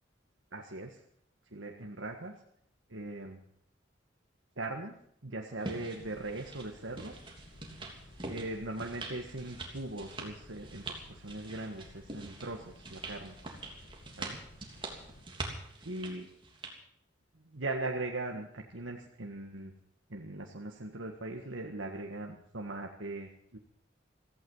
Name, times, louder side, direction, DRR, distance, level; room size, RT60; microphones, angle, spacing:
voice 1, 0.5-1.0 1.5-2.3 2.9-3.4 4.6-4.9 5.2-7.2 8.3-13.4 14.2-14.4 15.8-16.3 17.4-19.7 20.1-23.6, right 2 dB, 90° right, 1 dB, 1.7 m, -40 dB
sound 1, 5.6-16.8, right 2 dB, 25° right, 3.1 m, -45 dB
sound 2, 6.0-15.2, left 1 dB, 50° left, 1.3 m, -56 dB
16.5 x 15.5 x 5.6 m, 0.68 s
head